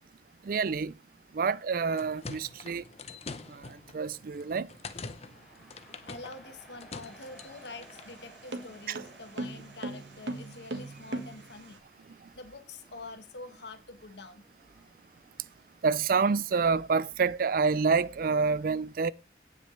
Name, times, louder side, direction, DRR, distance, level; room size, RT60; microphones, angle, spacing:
voice 1, 0.5-0.9 1.3-2.8 3.5-3.6 3.9-4.7 8.9-9.0 15.8-19.1, right 5 dB, 50° right, 0.4 m, -27 dB
sound 1, 1.7-8.1, left 4 dB, 35° left, 0.7 m, -45 dB
sound 2, 4.2-15.8, right 1 dB, ahead, 3.3 m, -58 dB
voice 2, 6.1-11.8 12.3-14.4, left 3 dB, 75° left, 1.4 m, -46 dB
sound 3, 7.0-11.8, right 2 dB, 80° right, 1.6 m, -40 dB
17.5 x 6.2 x 3.3 m
head